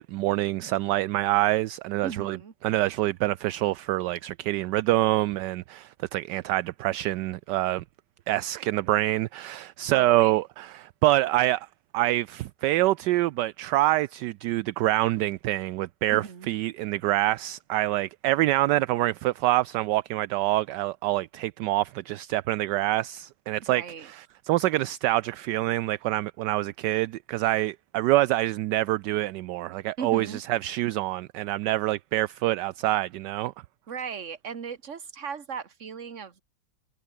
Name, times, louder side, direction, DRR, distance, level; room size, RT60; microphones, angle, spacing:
voice 1, 0.0-2.4 2.6-7.8 8.3-11.7 11.9-33.5, right 16 dB, 75° right, 1.1 m, -26 dB
voice 2, 2.0-2.5 9.8-10.4 16.1-16.5 23.7-24.1 30.0-30.4 33.9-36.4, right 6 dB, 40° right, 1.8 m, -37 dB
omnidirectional pair, 2.1 m